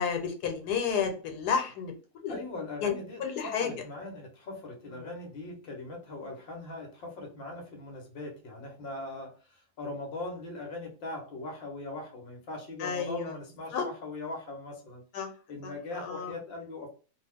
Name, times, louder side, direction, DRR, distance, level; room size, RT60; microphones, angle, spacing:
voice 1, 0.0-1.9 2.2-2.4 2.8-2.9 3.2-3.7 12.8-13.3 13.7-13.8 15.1-15.3 16.0-16.3, left 6 dB, 85° left, 5 dB, 1.2 m, -30 dB
voice 2, 2.3-15.0 15.5-16.9, left 2 dB, 45° left, 1 dB, 0.9 m, -40 dB
2.6 x 2.3 x 3.4 m, 0.38 s
omnidirectional pair, 1.7 m